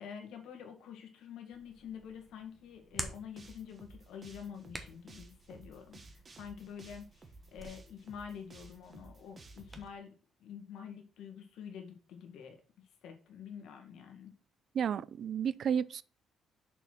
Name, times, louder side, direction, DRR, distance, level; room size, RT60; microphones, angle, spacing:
voice 1, 0.0-12.6 13.0-14.3, left 7 dB, 80° left, 1.9 m, -47 dB
Hands, 1.5-9.9, right 1 dB, 5° right, 1.2 m, -49 dB
sound 1, 2.9-9.8, right 3 dB, 30° right, 1.3 m, -54 dB
voice 2, 14.7-16.0, right 8 dB, 50° right, 0.4 m, -32 dB
6.8 x 4.8 x 6.0 m
cardioid pair, 140°, 0 cm